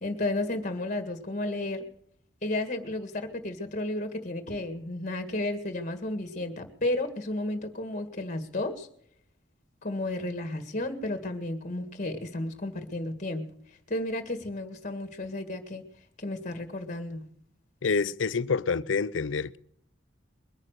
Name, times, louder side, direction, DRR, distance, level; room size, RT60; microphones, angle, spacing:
voice 1, 0.0-1.9 2.4-8.9 9.8-13.4 13.9-15.8 16.2-17.3, left 1 dB, 40° left, 1.9 m, -32 dB
voice 2, 17.8-19.6, left 5 dB, 85° left, 0.6 m, -27 dB
22.5 x 9.9 x 6.6 m
head